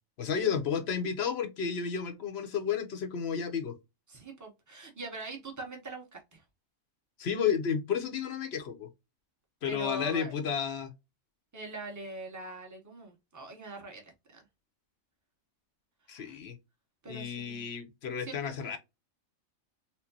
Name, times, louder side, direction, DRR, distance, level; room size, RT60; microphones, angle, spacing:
voice 1, 0.2-3.7 7.2-8.9 9.6-10.9 16.1-16.6 17.1-18.8, left 7 dB, 55° left, 0.9 m, -32 dB
voice 2, 4.1-6.4 9.6-10.3 11.5-14.4 16.0-16.4 17.0-17.7 18.2-18.8, right 2 dB, 15° right, 0.9 m, -43 dB
4.5 x 2.2 x 2.7 m
omnidirectional pair, 1.4 m